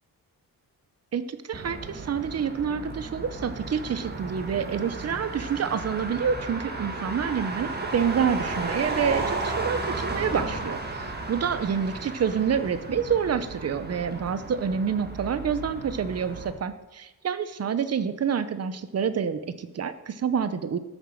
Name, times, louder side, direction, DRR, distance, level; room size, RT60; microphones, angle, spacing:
voice 1, 1.1-20.8, right 7 dB, 40° right, 12 dB, 0.8 m, -28 dB
Motor vehicle (road), 1.5-16.5, right 3 dB, 25° right, 1.6 m, -34 dB
12.5 x 7.1 x 7.6 m, 1.1 s
wide cardioid pair, 175°, 37 cm